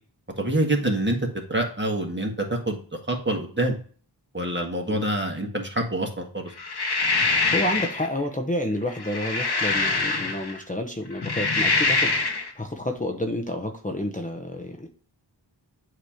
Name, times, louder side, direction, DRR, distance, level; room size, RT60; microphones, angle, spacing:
voice 1, 0.4-1.2 1.5-3.7 4.3-6.5, right 1 dB, 25° right, 1 dB, 1.6 m, -26 dB
sound 1, 6.6-8.1 8.9-10.6 11.1-12.5, left 3 dB, 60° left, 1.1 m, -24 dB
voice 2, 7.5-14.9, left 1 dB, 15° left, 3 dB, 0.8 m, -30 dB
8.1 x 3.0 x 4.9 m, 0.42 s
wide cardioid pair, 45°, 45 cm